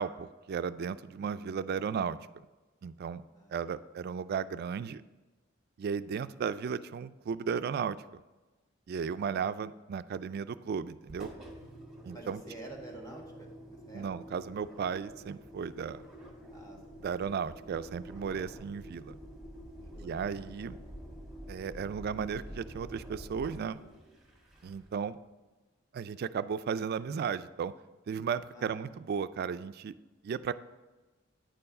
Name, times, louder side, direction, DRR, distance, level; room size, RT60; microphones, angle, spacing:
voice 1, 0.0-2.2 2.8-3.2 3.5-5.0 5.8-8.2 8.9-11.3 12.0-12.4 13.9-16.0 17.0-19.1 20.0-20.8 21.5-23.8 24.6-25.2 25.9-27.7 28.1-29.9 30.2-30.5, right 6 dB, 50° right, 14 dB, 0.3 m, -35 dB
voice 2, 3.3-3.7 12.1-14.0 16.5-17.1 19.8-20.5 28.5-28.9, right 1 dB, 20° left, 0 dB, 1.5 m, -49 dB
Engine, 11.0-25.0, right 1 dB, 5° right, 1.4 m, -48 dB
9.4 x 4.6 x 5.3 m, 1.2 s
head